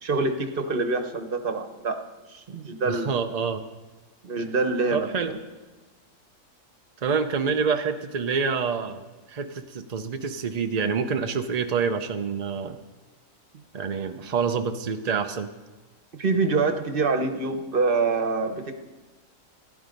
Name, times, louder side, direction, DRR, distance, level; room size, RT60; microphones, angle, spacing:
voice 1, 0.0-2.0 2.3-3.1 4.2-5.4 16.2-18.7, right 3 dB, 40° right, 7 dB, 1.1 m, -25 dB
voice 2, 2.9-3.6 4.9-5.3 7.0-12.8 13.7-15.5, right 5 dB, 80° right, 6 dB, 0.3 m, -27 dB
16.0 x 11.0 x 5.3 m, 1.2 s
omnidirectional pair, 1.8 m